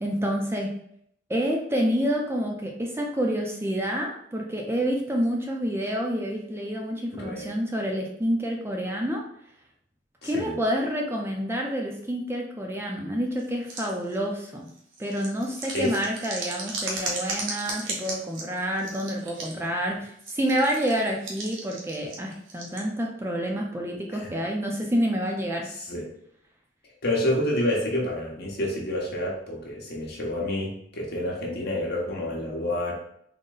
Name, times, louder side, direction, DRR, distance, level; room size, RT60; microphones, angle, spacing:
voice 1, 0.0-0.7 1.3-9.2 10.2-14.7 15.0-25.7, equal, 15° right, 0 dB, 0.4 m, -28 dB
voice 2, 7.1-7.5 10.2-10.5 15.7-15.9 24.1-24.3 25.7-26.1 27.0-32.9, left 1 dB, 60° left, -2 dB, 1.0 m, -28 dB
sound 1, 13.4-14.1 14.7-19.7 20.2-22.8, right 3 dB, 80° right, 0.9 m, -36 dB
3.8 x 2.1 x 3.8 m, 0.69 s
head